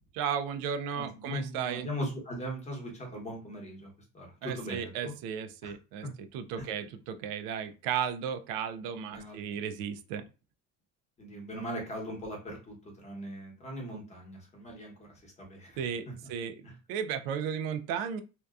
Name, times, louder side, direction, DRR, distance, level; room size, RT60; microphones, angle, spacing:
voice 1, 0.1-1.9 4.4-10.2 15.8-16.6 16.9-18.2, right 8 dB, 90° right, 9 dB, 0.5 m, -34 dB
voice 2, 1.0-5.1 5.6-5.7 6.0-6.1 6.6-6.7 9.1-9.6 11.2-15.9, equal, 20° left, 0 dB, 0.9 m, -39 dB
2.7 x 2.2 x 2.3 m, 0.31 s
cardioid pair, 150°, 35 cm